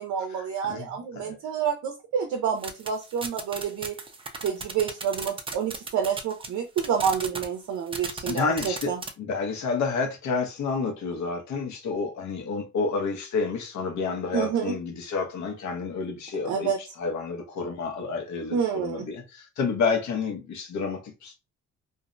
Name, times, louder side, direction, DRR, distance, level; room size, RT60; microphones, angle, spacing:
voice 1, 0.0-4.0 4.4-9.0 14.3-14.8 16.4-16.8 18.5-19.1, right 7 dB, 70° right, 0.5 m, -28 dB
sound 1, 2.6-6.5 6.8-7.5 7.9-9.1, right 4 dB, 20° right, 0.4 m, -35 dB
voice 2, 8.3-16.7 17.0-21.4, left 4 dB, 70° left, 0.8 m, -29 dB
2.5 x 2.0 x 2.5 m
cardioid pair, 90°, 30 cm